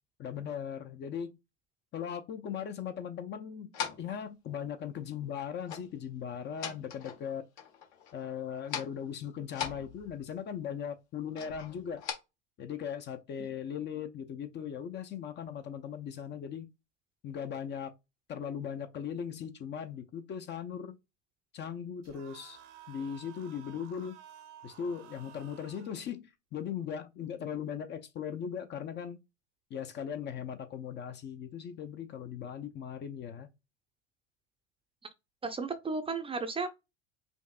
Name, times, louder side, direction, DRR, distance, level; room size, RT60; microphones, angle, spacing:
voice 1, 0.2-1.4 1.9-3.7 4.0-7.4 8.1-12.0 12.6-16.7 17.2-17.9 18.3-21.0 21.5-22.6 22.9-24.2 24.6-29.2 29.7-33.5, left 8 dB, 30° left, 0.5 m, -38 dB
sound 1, 3.7-4.2 5.6-5.9 6.3-7.3 7.6-8.3 8.6-9.0 9.5-10.4 11.4-12.1, left 8 dB, 65° left, 1.2 m, -40 dB
sound 2, 22.0-26.0, right 10 dB, 75° right, 1.0 m, -53 dB
voice 2, 35.4-36.7, right 4 dB, 15° right, 0.5 m, -34 dB
5.3 x 2.6 x 2.3 m
hypercardioid pair, 80°, 36 cm